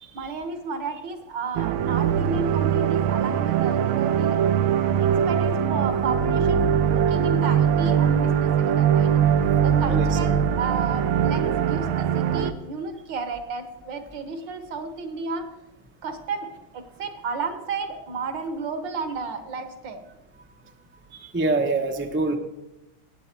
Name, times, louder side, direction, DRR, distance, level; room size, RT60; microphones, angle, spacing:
voice 1, 0.2-4.4 5.0-9.1 9.6-15.5 16.0-20.0, right 4 dB, 65° right, 9 dB, 1.7 m, -32 dB
sound 1, 1.6-12.5, right 8 dB, 80° right, 1.5 m, -21 dB
voice 2, 21.3-22.4, right 3 dB, 15° right, 4 dB, 0.3 m, -24 dB
17.0 x 8.3 x 4.5 m, 0.96 s
omnidirectional pair, 2.2 m